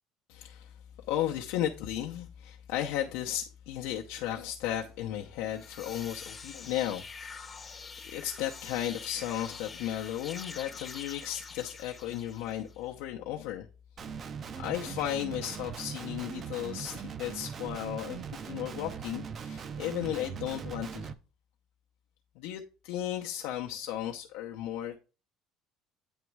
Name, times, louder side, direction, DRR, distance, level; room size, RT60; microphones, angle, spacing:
voice 1, 0.3-0.8 1.1-13.7 14.6-21.1 22.4-25.0, left 12 dB, 85° left, 0.7 m, -35 dB
sound 1, 5.4-12.8, left 5 dB, 20° left, 0.7 m, -45 dB
Guitar, 14.0-21.1, right 6 dB, 35° right, 0.5 m, -40 dB
8.9 x 3.1 x 4.6 m
cardioid pair, 135°, 0 cm